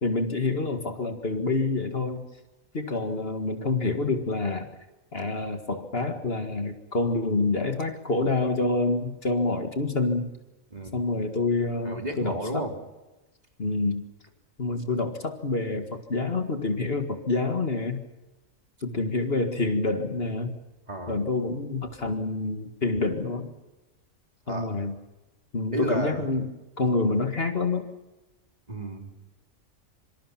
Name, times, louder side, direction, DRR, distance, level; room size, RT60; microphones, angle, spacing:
voice 1, 0.0-2.3 2.7-4.7 5.1-10.4 10.9-12.7 13.6-14.0 14.6-18.0 18.8-20.6 21.1-23.5 24.5-24.9 25.5-27.9, left 3 dB, 45° left, 6 dB, 2.1 m, -27 dB
voice 2, 11.8-12.7 20.9-21.2 24.5-24.7 25.7-26.2 28.7-29.1, right 2 dB, 30° right, 3 dB, 3.4 m, -32 dB
26.5 x 25.5 x 5.8 m, 1.1 s
omnidirectional pair, 1.4 m